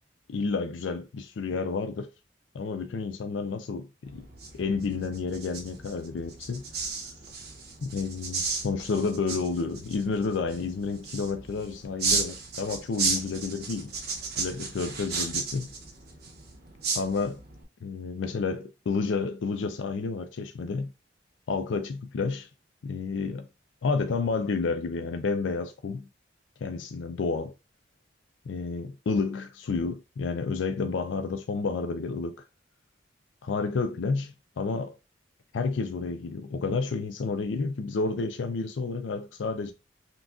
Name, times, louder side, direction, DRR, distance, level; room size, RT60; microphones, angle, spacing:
voice 1, 0.3-2.1 2.5-4.3 4.5-6.6 7.8-13.9 14.4-15.7 17.0-17.4 17.8-20.9 21.5-22.5 22.8-23.5 23.8-26.1 26.6-27.5 28.5-32.4 33.4-34.9 35.5-39.7, left 4 dB, 80° left, 0.4 m, -30 dB
sound 1, 4.0-17.6, right 4 dB, 55° right, 0.9 m, -34 dB
5.9 x 2.4 x 2.3 m
head